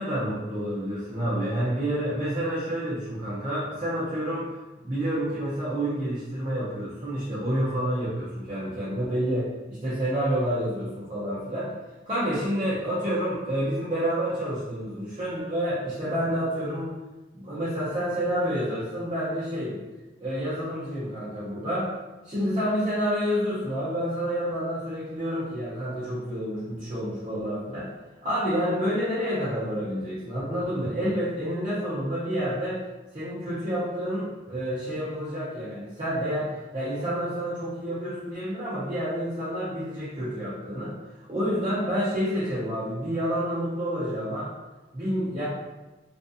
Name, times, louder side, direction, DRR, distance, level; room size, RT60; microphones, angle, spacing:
voice 1, 0.0-4.5 4.8-11.7 12.1-16.9 17.3-19.8 20.2-21.9 22.2-27.9 28.2-32.8 33.1-40.9 41.3-44.5 44.9-45.4, equal, 30° right, -10 dB, 0.6 m, -29 dB
2.5 x 2.2 x 2.6 m, 1.1 s
head